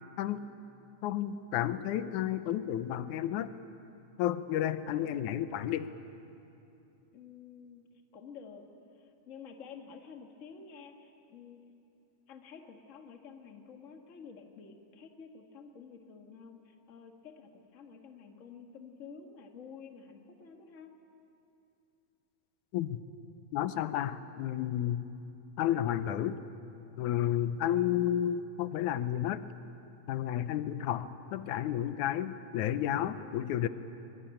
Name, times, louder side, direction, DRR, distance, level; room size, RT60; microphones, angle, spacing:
voice 1, 1.0-3.5 4.2-5.9 22.7-23.0 23.5-25.0 25.6-26.4 27.0-29.4 30.1-33.7, left 11 dB, 85° left, 12 dB, 2.2 m, -31 dB
voice 2, 7.1-8.6 9.0-11.7 12.3-20.9, left 6 dB, 35° left, 4 dB, 1.5 m, -50 dB
23.5 x 22.5 x 8.9 m, 2.7 s
omnidirectional pair, 3.4 m